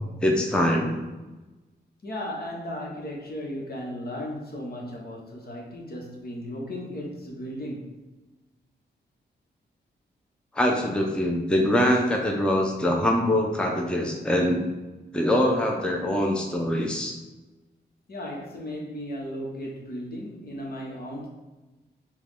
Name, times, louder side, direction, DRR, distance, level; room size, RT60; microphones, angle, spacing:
voice 1, 0.2-1.0 10.5-14.6 15.1-17.1, left 1 dB, 5° left, 0 dB, 0.6 m, -23 dB
voice 2, 2.0-7.9 18.1-21.3, equal, 60° left, -2 dB, 1.1 m, -35 dB
4.6 x 2.4 x 3.6 m, 1.1 s
cardioid pair, 60°, 18 cm